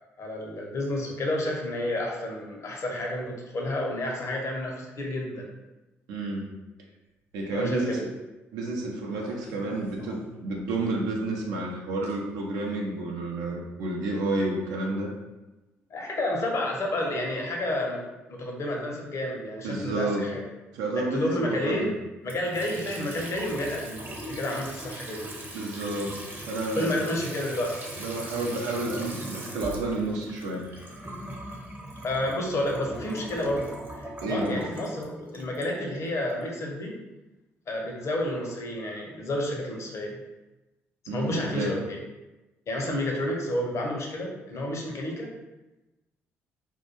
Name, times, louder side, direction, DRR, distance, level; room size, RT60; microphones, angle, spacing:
voice 1, 0.2-5.5 7.5-8.0 15.9-18.0 18.3-20.4 21.1-21.9 22.2-25.2 26.7-27.8 32.0-36.9 37.7-40.2 41.1-42.0 42.7-45.3, left 1 dB, 45° left, 0 dB, 0.6 m, -30 dB
voice 2, 6.1-6.4 7.3-8.1 8.5-15.1 19.6-20.2 20.7-21.9 25.5-26.9 28.0-30.7 34.2-34.6 41.1-41.7, right 2 dB, 70° right, -1 dB, 0.4 m, -30 dB
sound 1, 7.3-7.8 9.1-10.9 12.0-12.1 13.0-13.2, left 2 dB, 90° left, 0.5 m, -49 dB
Water tap faucet / Sink (filling or washing) / Trickle dribble, 22.2-36.3, right 1 dB, 30° right, 0.6 m, -40 dB
sound 2, 28.8-30.8 31.0-32.5 32.9-34.2 34.6-35.9, equal, 5° left, 0.3 m, -44 dB
2.2 x 2.1 x 2.9 m, 1.0 s
hypercardioid pair, 50°, 7 cm